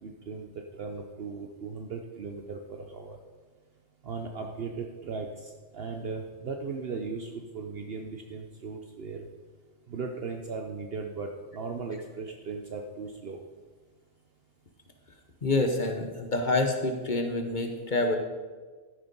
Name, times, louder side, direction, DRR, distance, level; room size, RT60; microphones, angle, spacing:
voice 1, 0.0-0.5 0.8-3.2 4.0-9.3 9.9-13.4, right 4 dB, 60° right, 4 dB, 0.9 m, -37 dB
voice 2, 15.4-18.2, left 2 dB, 45° left, 4 dB, 1.0 m, -27 dB
12.5 x 6.3 x 5.2 m, 1.4 s
omnidirectional pair, 1.3 m